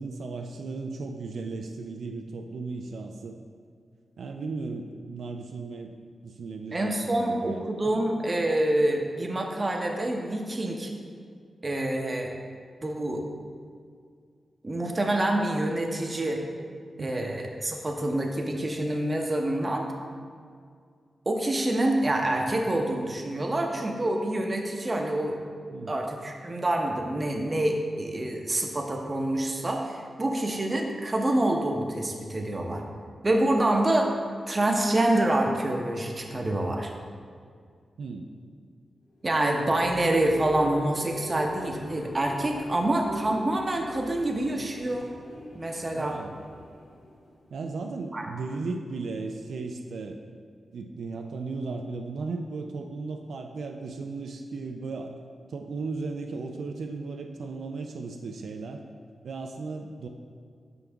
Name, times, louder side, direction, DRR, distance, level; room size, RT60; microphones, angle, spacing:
voice 1, 0.0-3.4 4.2-5.9 6.2-7.7 8.0-8.1 17.0-17.3 25.7-26.0 38.0-38.3 45.9-46.3 47.5-50.2 50.7-55.1 55.5-58.8 59.2-60.1, right 3 dB, 80° right, 3 dB, 0.4 m, -36 dB
voice 2, 6.7-10.9 11.6-12.3 12.8-13.2 14.6-16.4 17.0-19.9 21.3-25.4 25.9-32.8 33.2-34.1 34.5-36.9 39.2-45.1 45.5-46.2 48.1-48.3, right 1 dB, 30° right, 2 dB, 0.7 m, -26 dB
sound 1, 39.1-47.8, left 1 dB, 75° left, 1.0 m, -43 dB
5.9 x 5.4 x 3.4 m, 2.1 s
cardioid pair, 85°, 0 cm